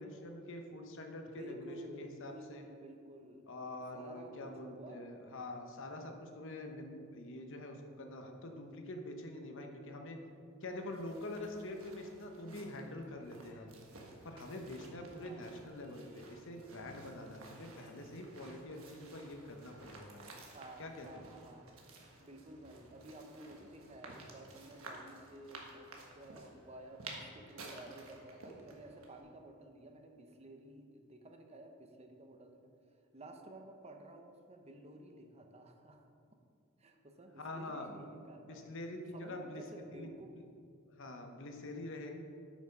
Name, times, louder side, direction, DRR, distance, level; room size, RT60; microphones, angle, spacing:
voice 1, 0.0-2.6 3.5-10.2 10.6-13.7 14.2-20.2 20.8-21.3 37.4-37.9 38.5-39.6 39.9-40.1 40.3-40.4 40.9-42.1, left 1 dB, 65° left, 4 dB, 1.0 m, -45 dB
voice 2, 1.1-3.5 3.9-5.0 15.2-15.5 20.5-21.7 22.2-32.7 33.1-36.1 36.8-38.6 39.1-40.3, right 1 dB, 30° right, 4 dB, 0.8 m, -53 dB
sound 1, 10.6-29.2, right 3 dB, 70° right, 1.4 m, -54 dB
8.5 x 6.1 x 5.4 m, 2.3 s
head